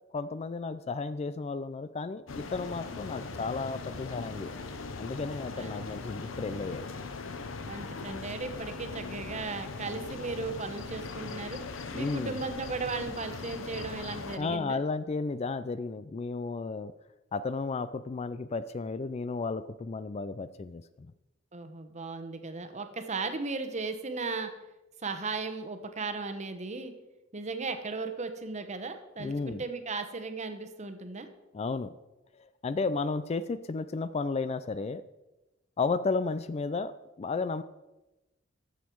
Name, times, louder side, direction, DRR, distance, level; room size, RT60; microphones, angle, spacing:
voice 1, 0.1-4.5 5.0-6.9 11.9-12.4 14.4-16.9 17.3-21.1 29.2-29.6 31.5-31.9 32.3-35.0 35.8-36.9 37.2-37.6, left 4 dB, 30° left, 14 dB, 0.4 m, -33 dB
sound 1, 2.3-14.4, left 4 dB, 90° left, 0.9 m, -40 dB
voice 2, 7.6-11.6 11.9-14.8 21.5-24.5 25.0-26.9 27.3-31.3, right 4 dB, 35° right, 8 dB, 1.0 m, -36 dB
13.0 x 7.3 x 4.6 m, 1.0 s
head